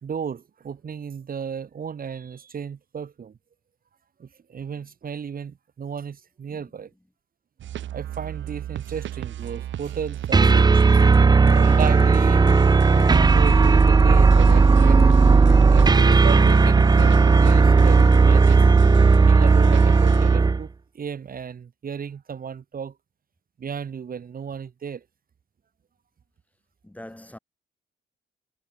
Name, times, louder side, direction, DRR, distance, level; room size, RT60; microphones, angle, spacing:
voice 1, 0.0-3.3 4.2-6.9 7.9-10.8 11.5-12.4 13.2-15.0 15.7-18.7 19.2-20.7 20.9-22.9 23.6-25.0, right 7 dB, 45° right, 2.9 m, -34 dB
voice 2, 6.5-6.8 26.8-27.4, left 1 dB, 5° left, 5.8 m, -43 dB
sound 1, 7.6-20.4, right 11 dB, 70° right, 2.9 m, -34 dB
sound 2, 10.3-20.6, right 4 dB, 20° right, 0.6 m, -15 dB
sound 3, 10.5-18.5, left 8 dB, 55° left, 7.2 m, -42 dB
cardioid pair, 90°, 20 cm